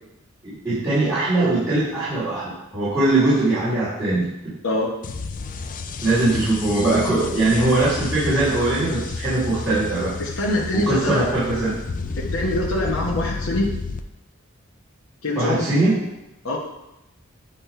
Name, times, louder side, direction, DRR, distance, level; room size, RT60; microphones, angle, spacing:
voice 1, 0.4-4.5 6.0-10.1 10.7-11.7 15.3-16.0, right 2 dB, 15° right, -15 dB, 3.1 m, -21 dB
sound 1, 5.0-14.0, left 4 dB, 40° left, 0.4 m, -31 dB
voice 2, 10.2-11.3 12.3-13.7 15.2-15.6 16.4-16.6, left 1 dB, 70° left, -3 dB, 1.2 m, -24 dB
9.2 x 3.3 x 5.7 m, 0.91 s
head